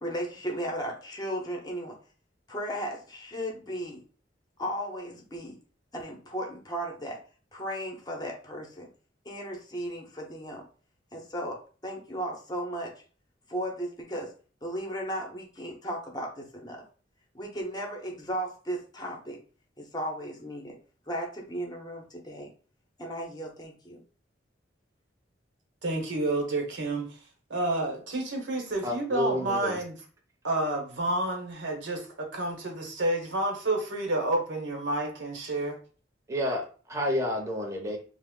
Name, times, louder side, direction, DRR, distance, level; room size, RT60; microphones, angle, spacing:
voice 1, 0.0-2.0 2.5-4.0 4.6-5.6 5.9-7.2 7.5-8.9 9.2-10.6 11.1-12.9 13.5-14.3 14.6-16.8 17.3-19.4 19.8-20.8 21.1-22.5 23.0-24.0, equal, 20° left, 0 dB, 0.7 m, -35 dB
voice 2, 25.8-27.1 27.5-29.9 30.4-35.8, right 2 dB, 80° right, 2 dB, 0.9 m, -29 dB
voice 3, 28.8-29.8 36.3-38.0, equal, 15° right, 1 dB, 0.6 m, -30 dB
2.9 x 2.0 x 3.6 m, 0.39 s
head